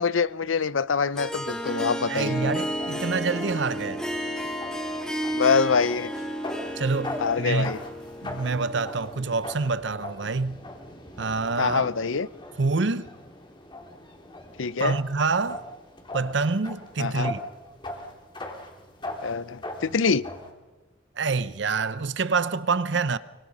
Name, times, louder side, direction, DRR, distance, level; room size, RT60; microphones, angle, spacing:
voice 1, 0.0-2.6 5.3-6.1 7.2-7.8 11.6-12.3 14.6-14.9 17.0-17.3 19.2-20.2, left 5 dB, 85° left, 0.7 m, -25 dB
Harp, 1.1-9.6, equal, 5° left, 3.2 m, -32 dB
voice 2, 2.1-4.0 6.8-7.7 8.2-10.6 11.2-11.9 12.6-13.1 14.8-15.6 16.1-17.4 21.2-23.2, right 4 dB, 65° right, 0.8 m, -26 dB
sound 1, 2.6-20.5, left 1 dB, 25° left, 2.9 m, -41 dB
24.5 x 24.0 x 5.5 m
head